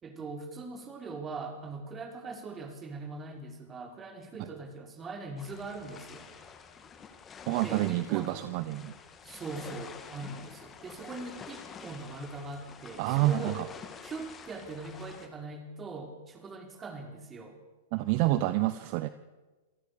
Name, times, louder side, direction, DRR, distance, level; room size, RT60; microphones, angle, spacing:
voice 1, 0.0-6.3 7.6-8.4 9.2-13.6 14.0-17.6, right 3 dB, 20° right, 5 dB, 4.5 m, -41 dB
sound 1, 5.4-15.3, left 6 dB, 20° left, 2.4 m, -48 dB
voice 2, 7.5-8.9 13.0-13.7 17.9-19.1, right 15 dB, 45° right, 14 dB, 1.0 m, -28 dB
27.0 x 18.5 x 6.6 m, 1.2 s
hypercardioid pair, 105°, 0 cm